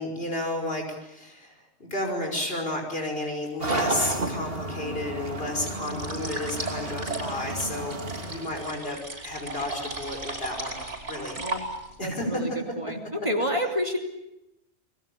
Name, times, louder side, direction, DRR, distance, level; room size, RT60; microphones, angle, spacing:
voice 1, 0.0-1.5 1.8-8.0 8.3-9.0 9.2-10.8 11.1-11.4 12.0-12.6 13.6-13.7, left 1 dB, 55° left, 2 dB, 5.9 m, -32 dB
sound 1, 3.6-8.7, right 2 dB, 55° right, 3.0 m, -32 dB
sound 2, 5.8-12.0, right 2 dB, 85° right, 6.1 m, -36 dB
voice 2, 12.0-12.5 12.8-13.0 13.2-14.0, equal, 25° right, 4 dB, 3.1 m, -28 dB
29.0 x 22.0 x 8.6 m, 0.86 s
omnidirectional pair, 1.2 m